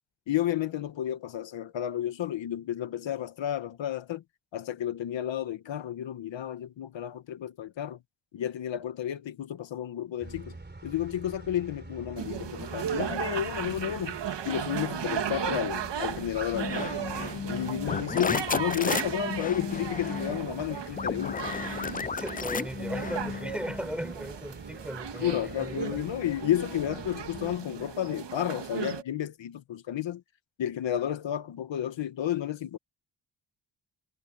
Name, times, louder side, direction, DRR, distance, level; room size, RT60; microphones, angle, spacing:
voice 1, 0.3-4.2 4.5-8.0 8.3-10.5 10.8-14.2 14.4-16.9 17.5-21.5 25.2-30.2 30.6-32.8, left 11 dB, 85° left, 1.4 m, -32 dB
sound 1, 10.2-27.6, right 2 dB, 25° right, 4.4 m, -47 dB
sound 2, 12.2-29.0, right 8 dB, 70° right, 1.9 m, -36 dB
sound 3, 16.5-23.8, left 5 dB, 20° left, 0.4 m, -33 dB
voice 2, 22.1-26.0, equal, ahead, 6.0 m, -37 dB
cardioid pair, 85°, 44 cm